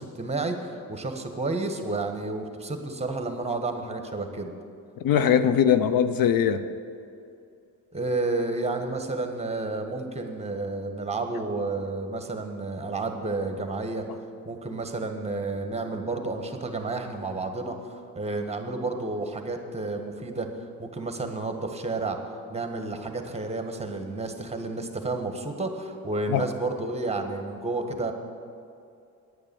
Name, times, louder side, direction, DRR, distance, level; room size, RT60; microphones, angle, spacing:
voice 1, 0.1-0.6 0.9-4.5 7.9-14.1 14.4-20.5 20.8-22.2 22.5-28.1, right 3 dB, 15° right, 5 dB, 1.3 m, -31 dB
voice 2, 5.0-6.6 26.3-26.5, left 8 dB, 65° left, 12 dB, 0.6 m, -21 dB
9.6 x 8.7 x 7.0 m, 2.5 s
cardioid pair, 85°, 38 cm